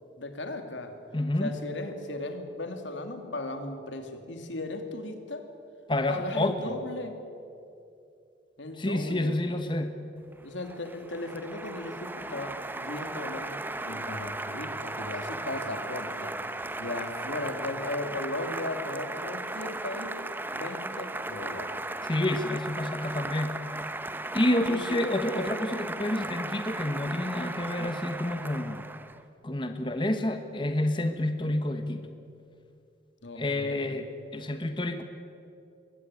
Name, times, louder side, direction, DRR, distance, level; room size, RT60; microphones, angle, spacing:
voice 1, 0.2-1.0 1.4-5.4 6.1-7.2 8.6-9.4 10.4-13.6 13.8-16.3 16.8-20.2 20.5-21.8 24.7-25.0 33.2-34.0, left 2 dB, 90° left, 6 dB, 2.6 m, -37 dB
voice 2, 1.1-1.5 5.9-6.8 8.8-9.9 22.1-23.6 24.3-28.8 29.4-32.0 33.3-34.0 34.3-35.0, left 1 dB, 25° left, 7 dB, 1.2 m, -29 dB
Applause, 10.3-29.2, right 2 dB, 10° right, 0.8 m, -36 dB
22.0 x 17.0 x 9.7 m, 2.6 s
head